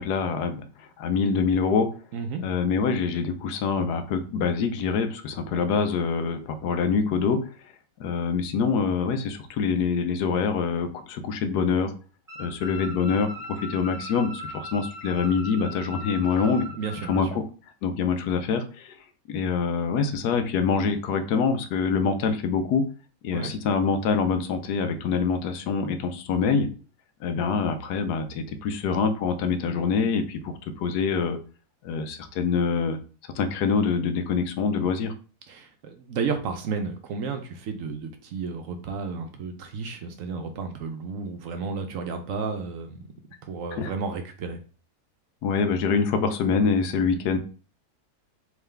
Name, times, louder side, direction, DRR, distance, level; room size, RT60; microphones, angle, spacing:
voice 1, 0.0-1.9 2.4-7.4 8.0-11.9 12.4-16.7 17.1-17.4 17.8-18.9 19.3-22.8 23.2-26.7 27.2-31.4 31.8-33.0 33.4-35.1 43.8-43.9 45.4-47.4, left 5 dB, 85° left, 8 dB, 1.2 m, -25 dB
voice 2, 2.1-2.4 16.7-17.3 23.3-23.6 35.5-43.0 43.4-44.6, right 5 dB, 65° right, 6 dB, 0.9 m, -32 dB
sound 1, 12.3-17.1, equal, 15° right, 0.7 m, -38 dB
3.7 x 3.0 x 3.3 m, 0.38 s
omnidirectional pair, 1.7 m